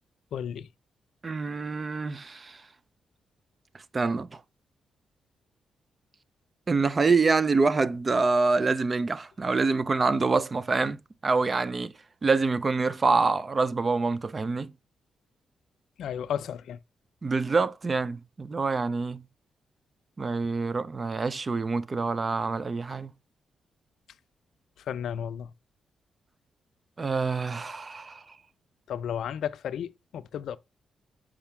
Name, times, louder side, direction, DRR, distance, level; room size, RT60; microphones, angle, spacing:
voice 1, 0.3-0.7 16.0-16.8 24.8-25.5 28.9-30.6, left 9 dB, 75° left, 0.4 m, -33 dB
voice 2, 1.2-2.6 3.9-4.4 6.7-11.0 11.2-11.9 12.2-14.7 17.2-19.2 20.2-23.1 27.0-28.2, right 4 dB, 25° right, 0.4 m, -26 dB
7.2 x 4.9 x 3.4 m
cardioid pair, 145°, 0 cm